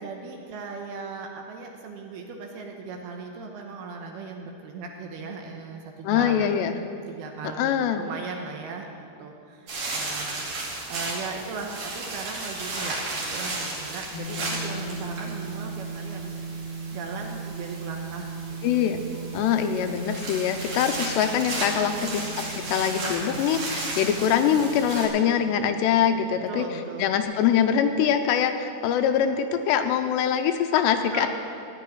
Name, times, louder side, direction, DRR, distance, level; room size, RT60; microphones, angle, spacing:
voice 1, 0.0-6.5 7.1-10.5 10.9-16.4 16.9-18.6 21.8-22.3 26.5-27.1 31.1-31.3, right 4 dB, 70° right, 2 dB, 2.7 m, -38 dB
voice 2, 6.0-6.7 7.6-8.0 18.6-19.0 19.3-31.3, left 8 dB, 80° left, 7 dB, 2.8 m, -23 dB
sound 1, 9.7-25.1, right 2 dB, 50° right, 3.8 m, -34 dB
sound 2, 14.1-27.2, right 4 dB, 35° left, 1.6 m, -38 dB
15.5 x 6.4 x 9.9 m, 2.5 s
omnidirectional pair, 5.1 m